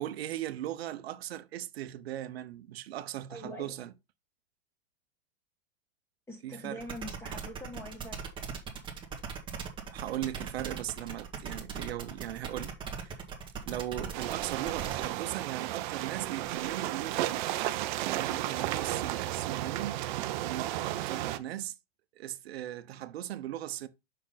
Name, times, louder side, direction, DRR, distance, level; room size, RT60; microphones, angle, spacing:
voice 1, 0.0-3.9 6.4-6.8 9.9-13.2 13.7-17.4 17.9-20.0 20.4-21.7 22.2-23.9, right 13 dB, 75° right, 1.0 m, -38 dB
voice 2, 3.3-3.7 6.3-8.2, equal, 10° left, 1.9 m, -43 dB
sound 1, 6.8-15.1, right 6 dB, 15° right, 1.4 m, -39 dB
sound 2, 14.1-21.4, right 14 dB, 50° right, 0.8 m, -33 dB
6.3 x 5.4 x 4.0 m
supercardioid pair, 155°, 31 cm